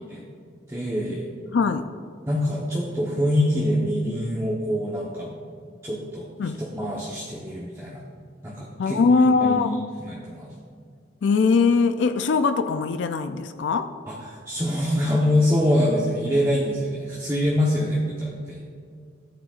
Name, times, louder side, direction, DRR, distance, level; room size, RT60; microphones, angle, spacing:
voice 1, 0.7-1.3 2.3-5.4 5.8-6.3 6.6-8.0 8.4-9.0 9.4-10.5 14.1-18.6, left 1 dB, 15° right, -5 dB, 0.9 m, -25 dB
voice 2, 1.5-1.9 6.4-6.6 8.8-9.8 11.2-13.9, left 4 dB, 70° left, 9 dB, 0.4 m, -21 dB
13.5 x 8.8 x 2.5 m, 2.2 s
head